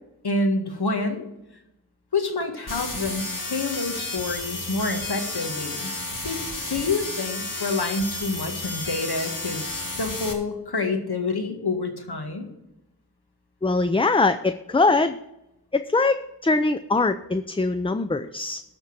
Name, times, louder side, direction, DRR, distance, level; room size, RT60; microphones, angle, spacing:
voice 1, 0.2-1.3 2.1-5.9 6.2-6.4 6.7-12.5, left 3 dB, 65° left, 5 dB, 1.9 m, -27 dB
sound 1, 2.7-10.3, left 2 dB, 50° left, 2.5 m, -32 dB
voice 2, 13.6-15.2 15.7-18.6, left 3 dB, 15° left, 10 dB, 0.4 m, -22 dB
13.0 x 4.4 x 8.6 m, 0.90 s
wide cardioid pair, 65°, 41 cm